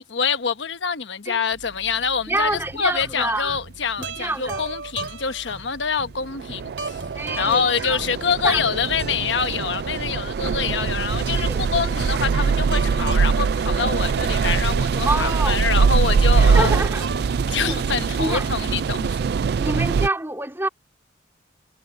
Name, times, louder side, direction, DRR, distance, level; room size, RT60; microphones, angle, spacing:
voice 1, 0.0-7.0 7.4-16.8 17.5-19.2, left 6 dB, 80° left, 1.0 m, -25 dB
voice 2, 2.3-3.6 4.2-4.6 7.1-8.0 8.4-8.6 11.3-11.7 15.0-15.6 16.4-17.8 18.2-18.5 19.6-20.7, right 2 dB, 15° right, 3.0 m, -27 dB
sound 1, 2.4-2.5 5.8-5.9 6.2-20.1, right 5 dB, 60° right, 0.3 m, -22 dB
sound 2, 2.4-18.0, right 3 dB, 90° right, 3.8 m, -38 dB
head